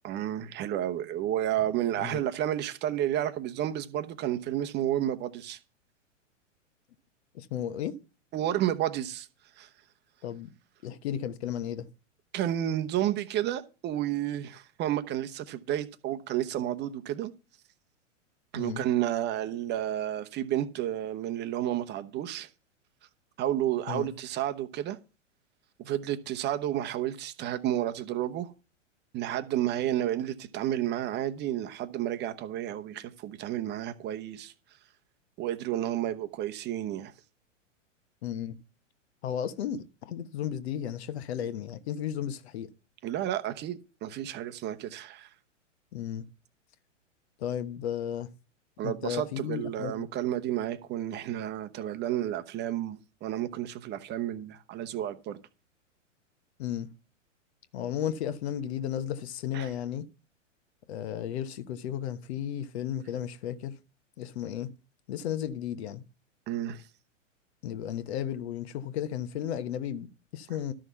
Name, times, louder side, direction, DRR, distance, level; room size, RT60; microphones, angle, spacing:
voice 1, 0.0-5.6 8.3-9.3 9.6-9.7 12.3-17.3 18.5-22.5 23.4-25.0 25.8-28.5 29.1-34.5 35.4-37.1 43.0-45.3 48.8-55.4 59.5-59.7 66.5-66.8, right 12 dB, 25° right, 1.0 m, -31 dB
voice 2, 7.3-8.0 10.2-10.5 10.8-11.9 18.5-18.9 23.9-24.1 38.2-38.5 39.2-42.7 45.9-46.2 47.4-48.3 48.8-50.1 56.6-56.9 57.7-60.0 60.9-63.8 64.2-64.7 65.1-66.0 67.6-70.7, left 10 dB, 55° left, 1.2 m, -34 dB
12.5 x 6.2 x 5.7 m
hypercardioid pair, 115°, 38 cm